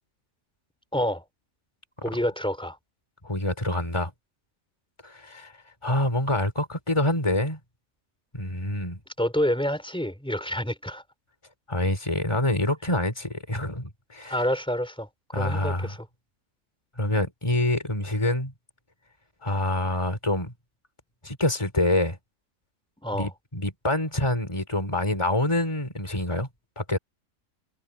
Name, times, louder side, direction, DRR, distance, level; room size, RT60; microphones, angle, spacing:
voice 1, 0.9-1.2 2.0-2.8 9.2-11.0 14.3-16.0 23.0-23.3, equal, 5° left, 4.2 m, -28 dB
voice 2, 3.2-4.1 5.0-5.5 5.8-7.6 8.3-9.0 11.7-14.4 15.3-16.0 17.0-18.5 19.4-20.5 21.2-22.2 23.1-26.5 26.8-27.0, left 1 dB, 20° left, 4.0 m, -26 dB
omnidirectional pair, 1.5 m